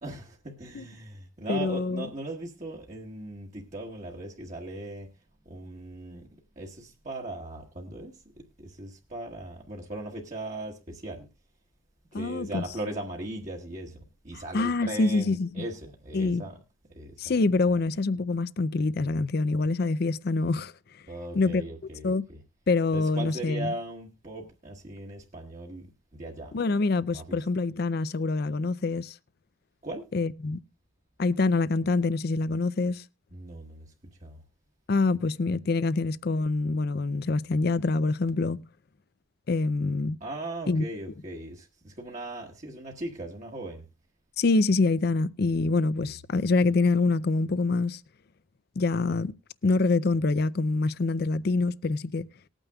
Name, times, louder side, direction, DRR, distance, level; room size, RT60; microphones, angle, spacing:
voice 1, 0.0-5.1 5.4-6.3 6.5-11.3 12.1-16.6 16.9-17.4 17.7-17.8 21.1-22.4 22.9-26.5 27.1-27.5 29.8-30.1 33.3-33.9 34.2-34.4 40.2-43.8 45.6-45.7 46.0-46.2, right 1 dB, 35° right, 1.4 m, -39 dB
voice 2, 1.5-2.0 12.1-12.6 14.5-15.5 16.1-16.4 17.2-20.7 21.3-21.6 22.0-22.2 22.7-23.7 26.5-29.1 30.1-30.6 31.2-33.0 34.9-38.6 39.5-40.2 40.7-40.8 44.4-48.0 48.8-49.3 49.6-52.3, left 3 dB, 50° left, 0.5 m, -25 dB
20.0 x 9.0 x 2.3 m
head